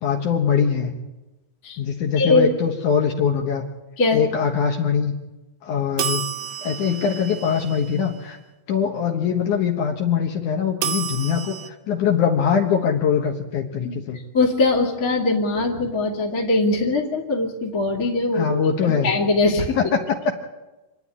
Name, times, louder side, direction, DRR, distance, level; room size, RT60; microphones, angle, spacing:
voice 1, 0.0-1.0 1.8-3.6 4.1-5.1 5.6-6.2 6.6-8.4 8.7-14.2 18.3-19.1 19.8-20.0, left 7 dB, 65° left, 2 dB, 2.6 m, -22 dB
voice 2, 2.2-2.5 4.0-4.2 13.8-14.0 14.3-18.6 19.0-19.8, left 2 dB, 30° left, -3 dB, 2.6 m, -21 dB
sound 1, 6.0-8.2 10.8-11.7, right 9 dB, 70° right, 1.5 m, -30 dB
27.5 x 10.0 x 9.8 m, 1.1 s
omnidirectional pair, 4.0 m